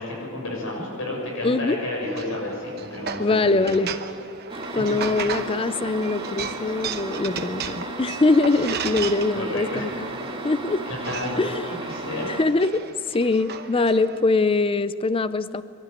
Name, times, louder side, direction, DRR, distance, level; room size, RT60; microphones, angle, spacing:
voice 1, 0.0-3.7 9.3-9.9 10.9-11.5 11.8-12.3, left 1 dB, 60° left, -2 dB, 6.5 m, -31 dB
voice 2, 1.4-1.8 3.2-3.9 4.7-10.1 10.4-10.8 11.4-11.7 12.3-15.6, left 3 dB, 25° left, 14 dB, 0.5 m, -23 dB
sound 1, 2.0-14.2, right 6 dB, 45° right, 1.0 m, -36 dB
sound 2, 4.5-12.4, right 2 dB, 25° right, 1.8 m, -34 dB
25.0 x 12.0 x 9.4 m, 2.4 s
head